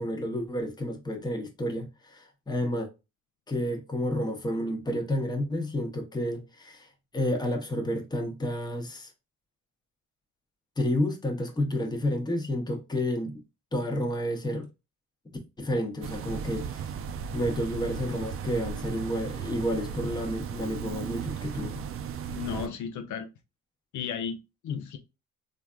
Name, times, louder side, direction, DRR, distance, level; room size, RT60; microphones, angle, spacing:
voice 1, 0.0-2.9 3.5-6.9 7.1-9.1 10.8-13.3 13.7-14.7 15.6-16.8 17.3-21.8, left 1 dB, 15° left, 0.8 m, -30 dB
sound 1, 16.0-22.7, right 7 dB, 50° right, 0.4 m, -36 dB
voice 2, 22.3-23.3 23.9-25.0, left 7 dB, 70° left, 0.6 m, -34 dB
3.2 x 2.5 x 2.3 m
cardioid pair, 90°, 30 cm